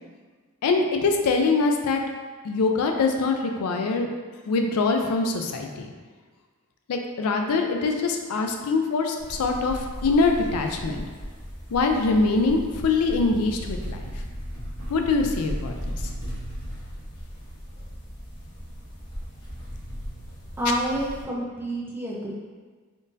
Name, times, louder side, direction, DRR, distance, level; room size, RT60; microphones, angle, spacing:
voice 1, 0.6-2.0 2.4-4.1 4.5-5.9 6.9-11.0 11.7-14.1 14.9-16.0, left 3 dB, 85° left, 4 dB, 0.4 m, -23 dB
sound 1, 9.2-21.2, equal, 60° left, 0.9 m, -36 dB
voice 2, 20.6-22.3, right 1 dB, 10° right, -5 dB, 0.4 m, -28 dB
3.6 x 2.5 x 2.6 m, 1.5 s
head